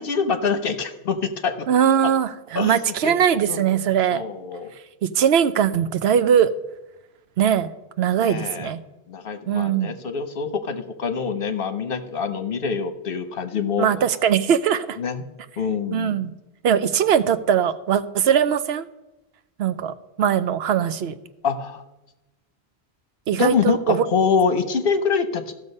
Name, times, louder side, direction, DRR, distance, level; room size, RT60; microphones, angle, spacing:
voice 1, 0.0-1.5 2.5-2.7 3.0-3.1 3.5-3.6 4.1-4.7 8.2-8.7 9.1-13.9 15.0-15.2 15.6-16.2 21.4-21.8 23.3-25.5, left 5 dB, 60° left, 9 dB, 1.1 m, -25 dB
voice 2, 1.7-4.2 5.0-6.5 7.4-7.7 8.0-8.8 9.5-9.9 13.8-15.0 15.9-16.3 16.6-18.9 19.6-21.1 23.3-24.0, right 8 dB, 75° right, 13 dB, 0.9 m, -20 dB
14.5 x 6.5 x 5.4 m, 1.0 s
omnidirectional pair, 1.1 m